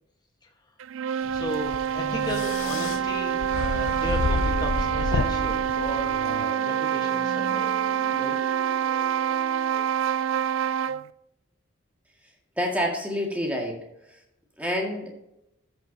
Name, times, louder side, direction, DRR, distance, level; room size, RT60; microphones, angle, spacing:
sound 1, 0.8-11.1, right 9 dB, 70° right, 0.3 m, -26 dB
sound 2, 1.3-6.5, left 3 dB, 75° left, 0.6 m, -30 dB
voice 1, 1.3-7.7 8.1-8.4, left 1 dB, 20° left, 3 dB, 1.3 m, -36 dB
sound 3, 1.9-9.8, equal, 55° left, 3.3 m, -42 dB
voice 2, 12.6-13.8 14.1-14.2 14.6-15.1, equal, 5° right, -1 dB, 1.9 m, -28 dB
13.5 x 7.0 x 2.8 m, 0.83 s
head